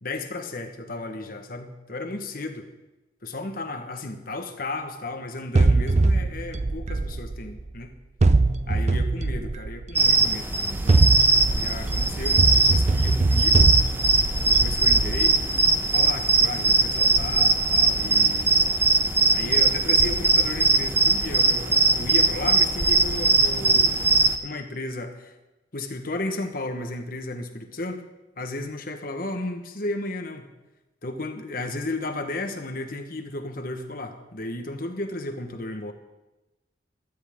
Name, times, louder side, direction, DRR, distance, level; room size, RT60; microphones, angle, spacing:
voice 1, 0.0-2.7 3.2-7.9 8.7-11.1 11.5-13.7 14.4-15.4 15.9-18.7 19.3-24.0 24.4-25.3 25.7-28.0 28.4-30.5 31.0-35.9, left 2 dB, 50° left, 6 dB, 1.4 m, -34 dB
sound 1, 5.6-7.7 8.2-10.0 10.7-15.8, right 3 dB, 40° right, 0.5 m, -22 dB
sound 2, 9.9-24.4, right 3 dB, 10° right, 0.8 m, -21 dB
16.0 x 13.0 x 3.7 m, 1.0 s
head